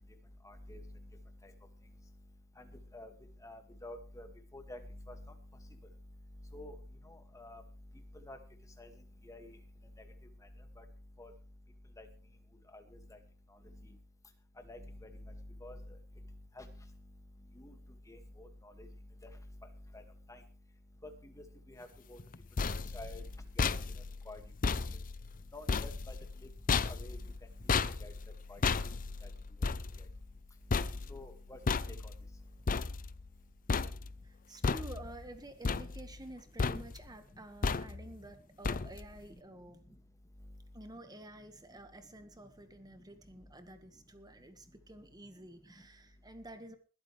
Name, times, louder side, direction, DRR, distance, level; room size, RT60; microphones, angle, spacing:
voice 1, 0.4-0.8 2.6-2.7 2.9-3.1 3.4-4.3 4.5-4.8 5.1-5.2 6.5-6.7 7.3-7.6 8.3-8.4 8.8-8.9 9.3-9.5 11.2-11.3 12.0-12.1 12.7-12.8 14.7-15.1 15.6-15.8 16.6-16.7 17.6-17.7 18.1-18.5 20.3-20.4 21.7-22.2 22.9-23.2 23.6-23.7 24.3-24.4 25.5-26.2 26.9-27.2 28.0-28.1 28.5-28.6 29.6-29.7 31.1-31.6 32.0-32.1, left 1 dB, 15° left, 6 dB, 2.1 m, -48 dB
sound 1, 22.2-33.4 33.7-34.3 34.6-35.3 35.6-36.3 36.6-37.1 37.6-38.2 38.6-39.2, left 4 dB, 40° left, 0.6 m, -35 dB
voice 2, 34.2-40.0 40.7-46.8, right 1 dB, 20° right, 8 dB, 1.7 m, -51 dB
21.0 x 11.5 x 3.4 m, 0.36 s
head